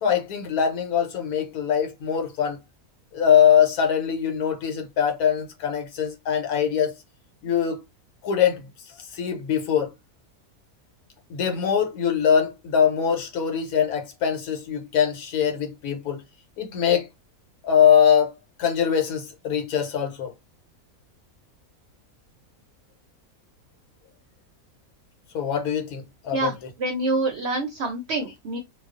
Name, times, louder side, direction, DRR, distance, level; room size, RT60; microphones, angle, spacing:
voice 1, 0.0-2.6 3.1-6.9 7.4-7.8 8.2-8.7 9.0-9.9 11.3-16.2 16.6-17.1 17.6-18.3 18.6-20.3 25.3-26.5, left 8 dB, 90° left, 1.2 m, -22 dB
voice 2, 26.3-28.6, right 2 dB, 60° right, 0.7 m, -27 dB
2.3 x 2.3 x 2.3 m
omnidirectional pair, 1.5 m